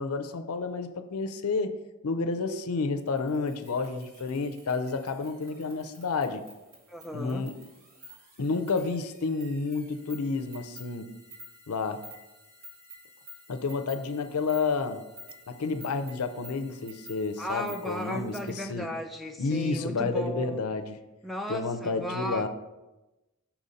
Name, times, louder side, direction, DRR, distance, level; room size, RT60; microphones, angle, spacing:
voice 1, 0.0-1.7 2.0-6.4 7.1-7.6 8.4-11.1 11.7-12.0 13.5-15.0 15.5-18.9 19.4-20.9 21.5-22.5, left 4 dB, 80° left, 9 dB, 0.5 m, -30 dB
sound 1, 3.0-18.6, equal, 85° right, 2.2 m, -51 dB
voice 2, 6.9-7.4 17.4-20.6 21.2-22.5, equal, ahead, 4 dB, 0.4 m, -35 dB
6.0 x 4.1 x 5.1 m, 1.0 s
head